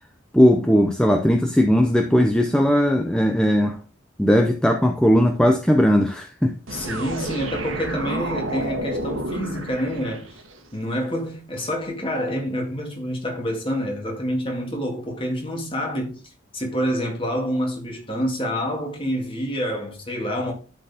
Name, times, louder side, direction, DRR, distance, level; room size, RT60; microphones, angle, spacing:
voice 1, 0.3-3.8 4.2-6.6, equal, 5° left, 0.6 m, -18 dB
voice 2, 6.7-10.3 10.7-16.2 16.5-20.5, equal, 25° left, 2.1 m, -27 dB
sound 1, 6.7-10.6, right 1 dB, 80° right, 1.6 m, -30 dB
11.0 x 4.6 x 3.5 m
head